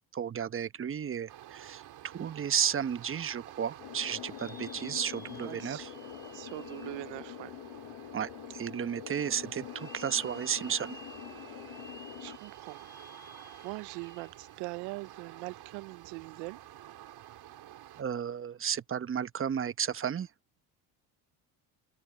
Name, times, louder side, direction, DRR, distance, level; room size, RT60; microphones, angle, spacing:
voice 1, 0.1-5.9 8.1-11.0 18.0-20.3, right 8 dB, 30° right, 1.0 m, -33 dB
sound 1, 1.3-18.0, right 13 dB, 60° right, 3.5 m, -50 dB
sound 2, 3.8-12.4, left 18 dB, 75° left, 1.3 m, -46 dB
sound 3, 3.9-7.9 8.4-8.5 9.6-14.5 14.9-15.0 17.0-17.1, left 1 dB, 10° left, 3.5 m, -54 dB
voice 2, 5.4-5.9 6.3-7.5 12.2-12.9 13.3-13.4 13.6-16.6, right 25 dB, 75° right, 0.6 m, -42 dB
supercardioid pair, 90°, 42 cm